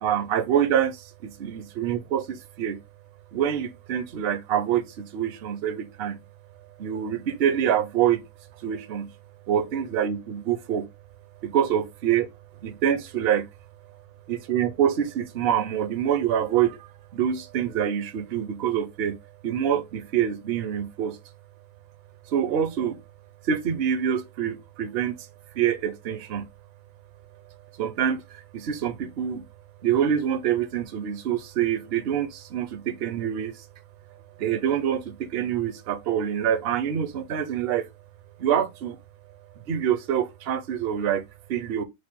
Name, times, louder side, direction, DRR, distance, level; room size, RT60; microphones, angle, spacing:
voice 1, 0.0-2.8 3.3-6.2 6.8-8.2 8.6-9.1 9.5-10.9 11.4-12.3 12.6-13.5 14.3-19.2 19.4-21.2 22.3-23.0 23.4-25.3 25.5-26.5 27.8-29.4 29.8-33.6 34.4-37.9 38.4-39.0 39.7-41.8, right 9 dB, 55° right, 0.7 m, -26 dB
4.6 x 2.1 x 4.4 m
omnidirectional pair, 1.7 m